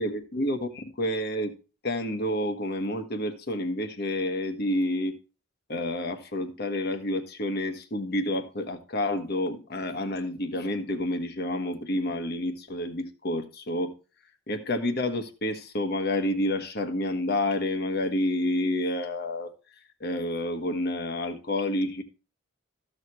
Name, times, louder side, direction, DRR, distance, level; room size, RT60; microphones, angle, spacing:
voice 1, 0.0-1.5 1.8-5.2 5.7-13.9 14.5-19.5 20.0-22.0, left 1 dB, 50° left, 7 dB, 1.3 m, -29 dB
14.0 x 6.5 x 3.2 m, 0.32 s
head